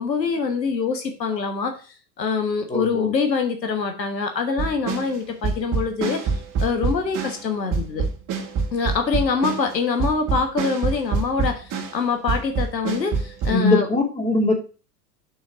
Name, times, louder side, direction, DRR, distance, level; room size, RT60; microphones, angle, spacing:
voice 1, 0.0-1.8 2.2-6.3 6.6-8.0 8.7-13.9, left 5 dB, 85° left, 5 dB, 1.4 m, -24 dB
voice 2, 2.7-3.1 13.5-14.5, left 2 dB, 15° left, 2 dB, 2.2 m, -21 dB
sound 1, 4.6-7.5 7.7-12.0 12.3-13.5, right 5 dB, 40° right, 2.1 m, -26 dB
6.3 x 4.4 x 6.2 m, 0.35 s
hypercardioid pair, 90°, 49 cm